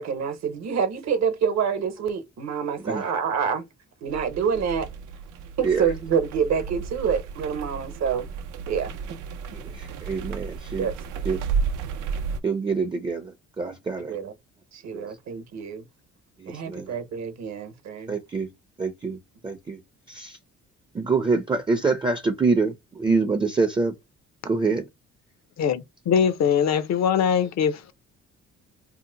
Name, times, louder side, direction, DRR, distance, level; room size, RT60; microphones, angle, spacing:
voice 1, 0.0-3.7 4.0-4.9 5.6-8.3 8.7-8.9 9.5-9.6 10.8-10.9 14.1-14.3 14.7-15.9 16.5-18.2, right 7 dB, 60° right, 0.9 m, -27 dB
sound 1, 4.1-12.4, right 5 dB, 80° right, 0.5 m, -33 dB
voice 2, 5.6-5.9 9.5-10.9 11.2-11.4 12.4-14.2 14.9-15.1 16.4-17.0 18.1-18.5 18.8-19.8 20.1-20.4 20.9-23.9 24.4-24.8, right 4 dB, 15° right, 0.5 m, -26 dB
voice 3, 25.6-27.9, left 7 dB, 60° left, 0.6 m, -22 dB
2.8 x 2.1 x 3.8 m
cardioid pair, 90°, 30 cm